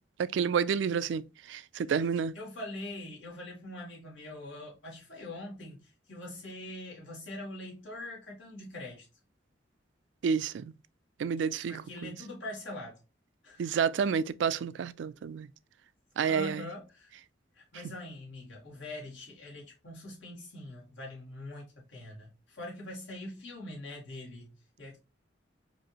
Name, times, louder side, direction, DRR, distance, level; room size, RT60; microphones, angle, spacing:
voice 1, 0.2-2.4 10.2-10.7 11.2-12.1 13.6-15.5 16.2-16.7, right 6 dB, 75° right, 0.3 m, -30 dB
voice 2, 2.4-9.1 11.7-13.0 13.4-13.8 16.3-17.1 17.6-25.0, left 1 dB, 85° left, 1.9 m, -43 dB
4.8 x 2.6 x 2.9 m
head